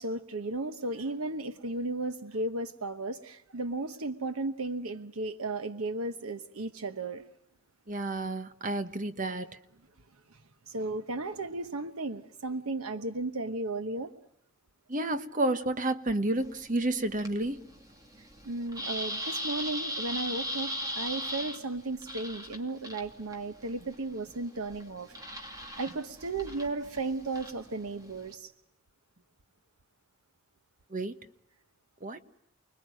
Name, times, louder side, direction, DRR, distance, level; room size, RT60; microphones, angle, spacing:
voice 1, 0.0-7.2 10.3-10.4 10.7-14.1 18.4-25.1 25.4-28.5, right 2 dB, 90° right, 1.1 m, -35 dB
voice 2, 7.9-9.6 14.9-17.6 30.9-31.2 32.0-32.2, right 2 dB, 40° right, 1.3 m, -30 dB
sound 1, 16.4-28.3, equal, 15° right, 2.7 m, -39 dB
30.0 x 20.5 x 9.1 m
head